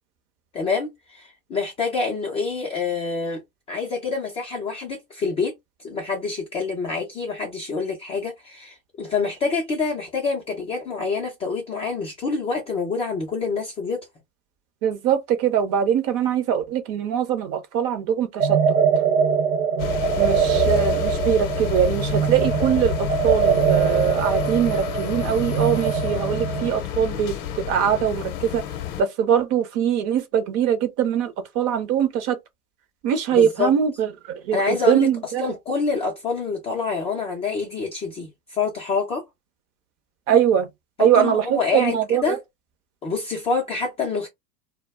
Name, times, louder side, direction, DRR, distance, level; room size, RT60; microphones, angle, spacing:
voice 1, 0.5-3.4 3.7-5.5 5.8-14.0 33.3-33.7 34.5-39.2 41.0-42.4 43.0-44.3, left 4 dB, 15° left, 0.3 m, -26 dB
voice 2, 14.8-18.8 20.2-28.6 29.0-32.4 33.0-34.1 34.4-35.4 40.3-40.7 41.0-42.4, right 8 dB, 35° right, 0.6 m, -22 dB
sound 1, 18.4-26.7, right 7 dB, 85° right, 0.7 m, -22 dB
sound 2, 19.8-29.0, left 12 dB, 45° left, 0.7 m, -29 dB
2.1 x 2.0 x 3.3 m
hypercardioid pair, 105°, 44 cm